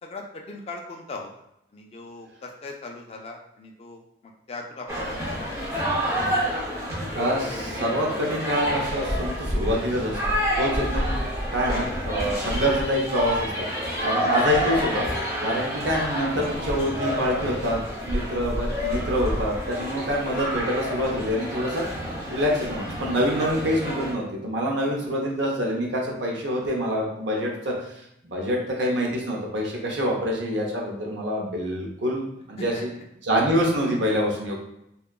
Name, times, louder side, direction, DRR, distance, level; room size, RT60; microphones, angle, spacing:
voice 1, 0.0-1.3 1.7-4.0 4.5-4.9 5.3-5.9 23.4-23.5 32.6-32.9, left 3 dB, 35° left, 1 dB, 0.3 m, -39 dB
sound 1, 4.9-24.1, equal, 15° right, 0.6 m, -28 dB
voice 2, 7.1-11.2 11.5-13.5 14.0-15.1 15.4-17.8 18.0-21.9 22.3-28.0 28.2-32.9 33.2-34.5, equal, 80° right, -1 dB, 0.7 m, -26 dB
2.7 x 2.3 x 2.3 m, 0.79 s
head